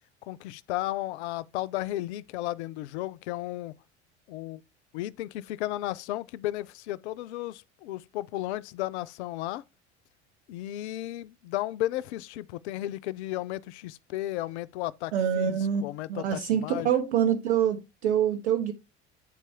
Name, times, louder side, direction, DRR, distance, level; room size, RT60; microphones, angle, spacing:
voice 1, 0.2-3.8 4.3-4.6 4.9-9.6 10.5-16.9, left 15 dB, 75° left, 0.5 m, -34 dB
voice 2, 15.1-15.8 16.1-18.7, right 9 dB, 80° right, 1.5 m, -25 dB
9.1 x 4.2 x 3.4 m
hypercardioid pair, 70°, 34 cm